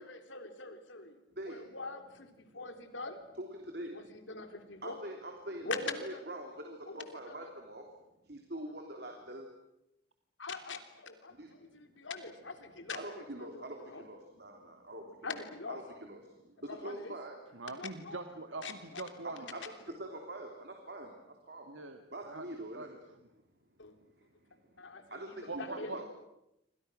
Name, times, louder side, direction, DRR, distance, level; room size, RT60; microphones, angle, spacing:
voice 1, 0.0-1.2 1.4-3.2 3.9-4.9 5.6-6.2 6.9-7.5 10.4-14.0 15.2-15.8 16.7-17.1 17.7-18.2 18.6-19.7 23.8-23.9 24.8-26.1, left 3 dB, 80° left, 7 dB, 3.3 m, -43 dB
voice 2, 1.3-1.7 2.5-2.6 3.4-7.9 8.2-9.5 11.3-11.7 12.9-15.4 15.7-17.4 19.2-21.7 22.1-23.0 23.8-26.0, right 1 dB, 55° right, 2 dB, 3.3 m, -45 dB
voice 3, 17.5-19.6 21.7-22.5 22.7-23.0 25.5-26.0, right 3 dB, 85° right, 6 dB, 1.8 m, -43 dB
28.5 x 25.5 x 6.3 m, 0.86 s
head